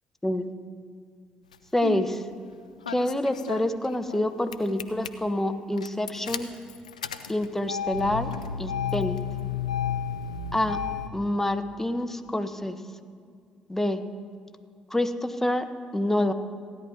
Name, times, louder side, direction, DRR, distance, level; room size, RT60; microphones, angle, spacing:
Engine starting, 1.5-2.1 2.8-4.2 4.5-5.1 5.8-11.1, left 8 dB, 85° left, 0.4 m, -32 dB
voice 1, 1.7-2.2 2.9-6.5 7.3-8.3 8.6-9.2 10.5-10.8 11.1-12.8 13.7-14.0 14.9-15.6 15.9-16.3, left 1 dB, 10° left, 8 dB, 1.0 m, -27 dB
16.0 x 10.0 x 4.2 m, 2.1 s
figure-of-eight pair, 45°, 4 cm